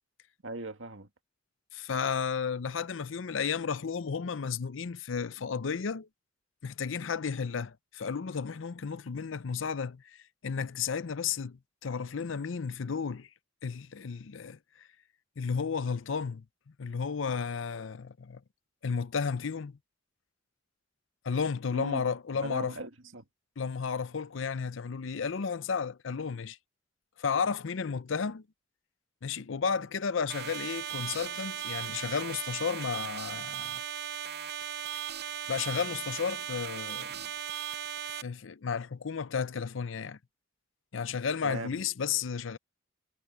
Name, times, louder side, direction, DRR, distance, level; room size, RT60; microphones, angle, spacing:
voice 1, 0.4-1.1 21.7-22.1 22.4-23.3 41.4-41.8, right 2 dB, 80° right, 1.9 m, -39 dB
voice 2, 1.7-6.1 6.6-10.2 10.4-13.3 13.6-14.6 15.4-16.4 16.8-18.4 18.8-19.8 21.2-22.7 23.6-26.6 27.2-28.4 29.2-33.8 35.5-37.2 38.2-40.2 40.9-42.6, left 6 dB, 75° left, 0.6 m, -33 dB
sound 1, 30.3-38.2, right 9 dB, 55° right, 0.8 m, -37 dB
head